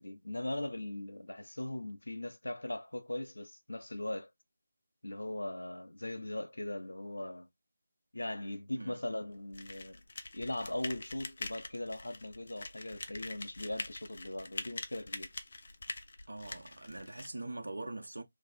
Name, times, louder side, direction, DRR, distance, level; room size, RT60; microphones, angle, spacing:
voice 1, 0.0-4.3 5.0-7.5 8.1-10.0 10.3-15.3, left 1 dB, 90° left, 1.0 m, -39 dB
sound 1, 9.5-17.3, left 3 dB, 55° left, 0.8 m, -44 dB
voice 2, 16.3-18.2, right 2 dB, 85° right, 1.1 m, -43 dB
3.5 x 3.2 x 4.2 m
figure-of-eight pair, 160°, 0 cm